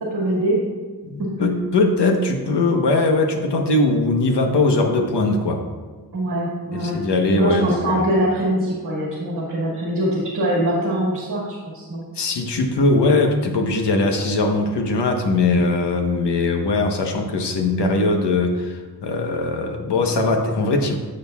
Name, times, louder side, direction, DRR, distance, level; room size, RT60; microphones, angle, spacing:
voice 1, 0.1-0.6 1.2-1.3 6.1-7.0 7.4-12.1 15.5-15.7, right 1 dB, 60° right, -5 dB, 2.2 m, -23 dB
voice 2, 1.1-5.6 6.7-8.1 12.1-21.0, left 2 dB, 90° left, 3 dB, 1.2 m, -20 dB
15.0 x 6.5 x 2.4 m, 1.4 s
wide cardioid pair, 165°, 40 cm